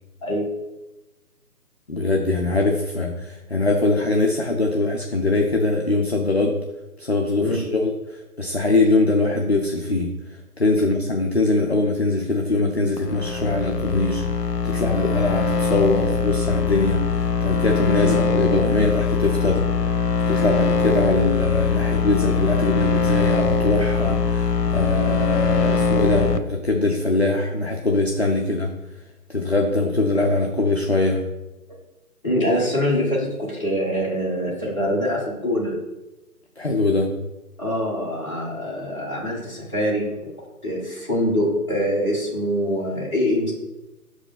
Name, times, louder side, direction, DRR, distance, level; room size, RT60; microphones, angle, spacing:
voice 1, 1.9-6.6 7.0-19.7 20.3-28.7 29.3-31.2 36.6-37.1, left 2 dB, 45° left, 2 dB, 0.5 m, -22 dB
sound 1, 13.0-26.4, left 5 dB, 90° left, 0.7 m, -22 dB
voice 2, 32.2-35.7 37.6-40.3 40.6-43.5, equal, 20° left, -5 dB, 1.3 m, -24 dB
6.3 x 4.9 x 4.0 m, 1.0 s
figure-of-eight pair, 155°, 47 cm